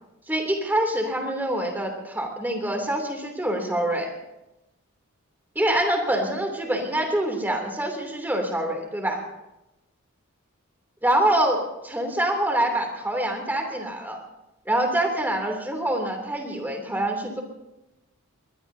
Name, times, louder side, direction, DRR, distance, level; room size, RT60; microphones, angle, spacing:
voice 1, 0.3-4.1 5.5-9.2 11.0-14.2 14.7-17.4, right 1 dB, 10° right, 2 dB, 3.0 m, -25 dB
21.5 x 21.0 x 2.8 m, 0.96 s
head